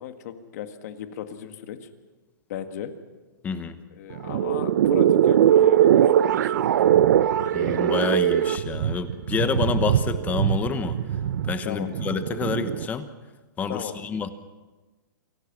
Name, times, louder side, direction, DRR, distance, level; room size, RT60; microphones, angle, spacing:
voice 1, 0.0-1.9 2.5-2.9 3.9-6.6 11.6-11.9 13.7-14.0, left 9 dB, 50° left, 8 dB, 1.9 m, -36 dB
voice 2, 3.4-3.8 7.5-11.0 11.4-13.1 13.6-14.3, left 6 dB, 15° left, 11 dB, 1.2 m, -28 dB
sound 1, 4.1-12.9, right 10 dB, 60° right, 0.8 m, -21 dB
27.0 x 16.5 x 6.1 m, 1.2 s
hypercardioid pair, 155°, 11 cm